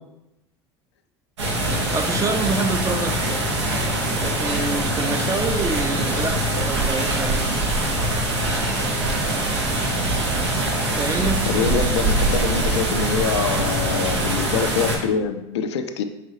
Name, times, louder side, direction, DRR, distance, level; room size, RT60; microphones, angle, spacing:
sound 1, 1.4-15.0, right 1 dB, 80° right, 0.8 m, -23 dB
voice 1, 1.9-3.4 4.2-7.4 11.0-11.4 11.7-12.0, right 3 dB, 20° right, 6 dB, 0.5 m, -27 dB
voice 2, 11.5-16.0, left 6 dB, 75° left, 7 dB, 0.4 m, -25 dB
5.0 x 3.0 x 2.7 m, 0.92 s
hypercardioid pair, 70°, 14 cm